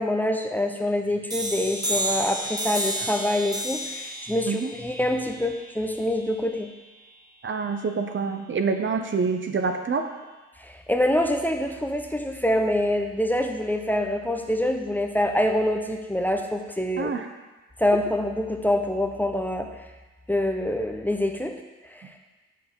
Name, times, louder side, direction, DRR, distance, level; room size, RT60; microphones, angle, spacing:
voice 1, 0.0-6.7 10.6-17.1 17.8-19.7 20.3-21.5 21.8-22.1, left 1 dB, 5° left, 3 dB, 0.9 m, -25 dB
sound 1, 1.3-6.7, right 1 dB, 10° right, 1.8 m, -31 dB
voice 2, 7.4-10.1 17.0-17.3, right 5 dB, 40° right, 5 dB, 0.7 m, -26 dB
6.5 x 5.7 x 5.5 m, 1.2 s
supercardioid pair, 60°, 30 cm